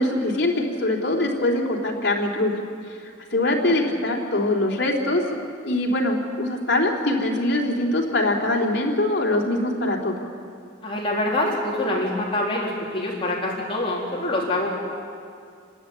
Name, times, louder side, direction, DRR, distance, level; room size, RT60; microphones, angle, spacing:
voice 1, 0.0-2.6 3.3-5.2 5.6-10.1, left 1 dB, 60° left, -1 dB, 3.5 m, -23 dB
voice 2, 3.5-3.8 10.8-14.7, left 1 dB, 30° left, -4 dB, 4.0 m, -25 dB
28.0 x 12.5 x 9.7 m, 2.3 s
head